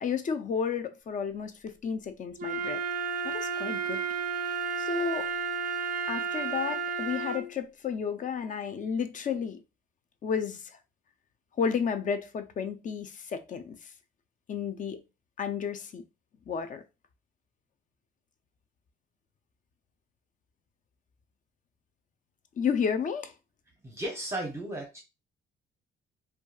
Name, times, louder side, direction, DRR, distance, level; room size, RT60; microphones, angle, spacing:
voice 1, 0.0-2.8 3.2-4.0 4.8-5.3 6.1-9.6 10.2-10.7 11.6-13.9 14.5-15.0 15.4-16.0 16.5-16.8 22.6-23.3, left 6 dB, 40° left, 0.4 m, -32 dB
Wind instrument woodwind instrument, 2.4-7.5, right 5 dB, 45° right, 0.4 m, -32 dB
voice 2, 23.8-25.0, right 1 dB, 15° right, 0.7 m, -35 dB
2.6 x 2.3 x 2.3 m
cardioid pair, 90°, 20 cm